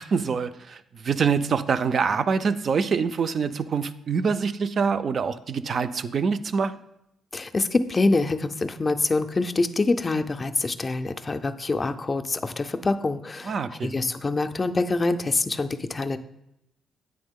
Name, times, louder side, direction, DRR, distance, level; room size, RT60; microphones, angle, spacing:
voice 1, 0.0-6.8 13.4-13.9, right 5 dB, 50° right, 12 dB, 0.3 m, -25 dB
voice 2, 7.3-16.2, left 3 dB, 30° left, 9 dB, 0.4 m, -25 dB
8.6 x 3.5 x 3.6 m, 0.82 s
cardioid pair, 90°, 0 cm